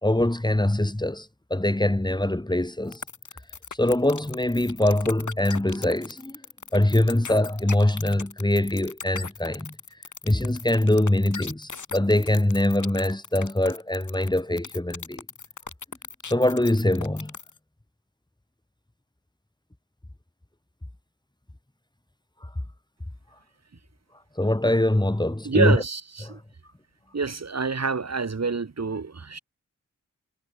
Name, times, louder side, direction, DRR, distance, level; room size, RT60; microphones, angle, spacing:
voice 1, 0.0-3.0 3.8-6.4 6.7-9.8 10.2-15.2 16.2-17.3 24.4-25.8 26.2-26.4, left 1 dB, 15° left, 3.8 m, -23 dB
sound 1, 2.9-17.6, left 5 dB, 70° left, 6.1 m, -38 dB
voice 2, 25.4-26.4 27.1-29.4, right 4 dB, 55° right, 6.6 m, -27 dB
wide cardioid pair, 80°, 31 cm